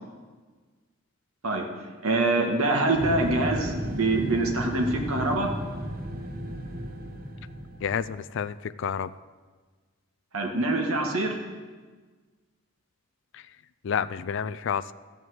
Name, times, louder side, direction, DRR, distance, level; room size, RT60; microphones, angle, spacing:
voice 1, 2.0-5.5 10.3-11.4, right 2 dB, 75° right, 1 dB, 1.7 m, -25 dB
sound 1, 2.9-8.1, right 1 dB, 40° right, 0.9 m, -34 dB
voice 2, 7.8-9.1 13.3-13.4 13.8-14.9, left 7 dB, 55° left, 13 dB, 0.3 m, -29 dB
14.0 x 5.4 x 7.8 m, 1.4 s
head